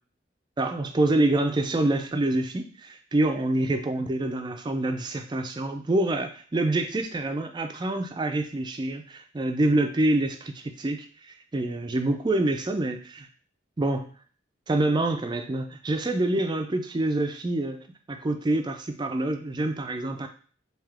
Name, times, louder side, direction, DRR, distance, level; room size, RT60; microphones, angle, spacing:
voice 1, 0.6-13.3 13.8-14.1 14.7-20.3, right 2 dB, 25° right, 6 dB, 0.4 m, -26 dB
3.5 x 2.8 x 3.4 m, 0.42 s
head